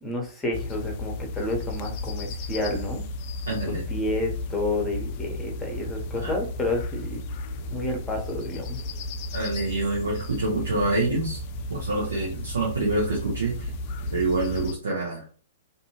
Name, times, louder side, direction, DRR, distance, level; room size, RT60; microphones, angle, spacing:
voice 1, 0.0-3.0 3.9-7.2 7.7-8.8, left 1 dB, 15° left, 1 dB, 0.9 m, -30 dB
sound 1, 0.5-14.7, left 1 dB, 40° left, 0.4 m, -34 dB
voice 2, 3.5-3.9 6.1-6.4 9.3-11.4 11.7-13.7 14.1-15.3, right 2 dB, 70° right, -4 dB, 0.9 m, -27 dB
2.6 x 2.6 x 2.9 m, 0.40 s
figure-of-eight pair, 115°, 0 cm